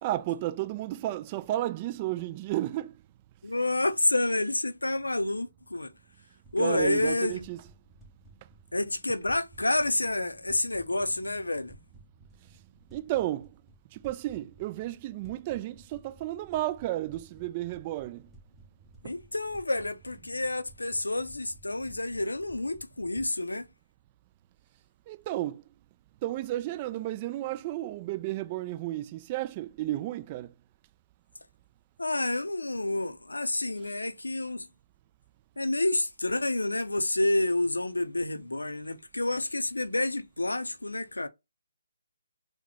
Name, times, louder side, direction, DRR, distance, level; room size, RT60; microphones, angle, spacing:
voice 1, 0.0-3.0 6.6-7.6 12.4-12.5 12.9-13.5 13.9-18.3 19.0-19.1 25.1-25.6 26.2-30.5, right 15 dB, 30° right, 0.4 m, -32 dB
voice 2, 3.4-5.9 6.5-7.4 8.7-11.8 19.0-23.7 32.0-34.7 35.6-41.3, left 2 dB, 90° left, 0.5 m, -29 dB
sound 1, 6.4-23.3, right 2 dB, 10° right, 0.9 m, -56 dB
4.2 x 2.2 x 2.9 m
figure-of-eight pair, 145°, 0 cm